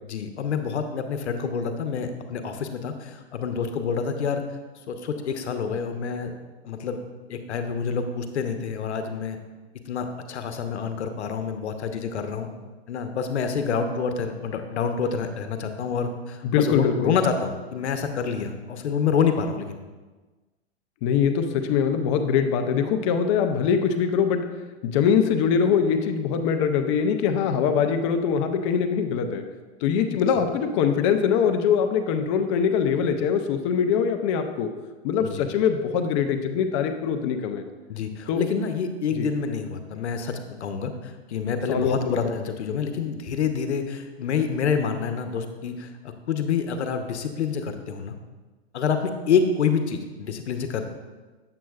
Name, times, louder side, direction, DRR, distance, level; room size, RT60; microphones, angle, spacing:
voice 1, 0.0-4.4 4.9-6.3 6.6-7.0 7.3-9.4 9.9-12.5 12.9-19.8 35.2-35.5 37.9-48.1 48.7-50.8, left 6 dB, 80° left, 7 dB, 0.8 m, -27 dB
voice 2, 16.4-17.2 21.0-24.5 24.8-29.4 29.8-34.7 35.0-37.6 38.3-38.4 39.2-39.3 41.7-42.3, left 7 dB, 30° left, 7 dB, 0.4 m, -23 dB
7.6 x 7.2 x 2.3 m, 1.3 s
hypercardioid pair, 135°, 33 cm